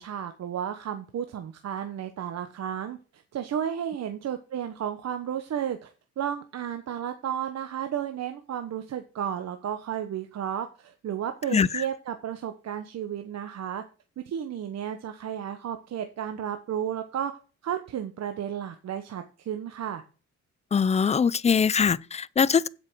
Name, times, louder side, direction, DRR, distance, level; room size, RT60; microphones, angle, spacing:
voice 1, 0.0-5.9 6.2-13.8 14.2-17.3 17.6-20.0, right 9 dB, 60° right, 1.1 m, -33 dB
voice 2, 11.5-11.8 20.7-22.7, left 6 dB, 20° left, 0.4 m, -22 dB
7.9 x 5.7 x 7.4 m
cardioid pair, 90°, 30 cm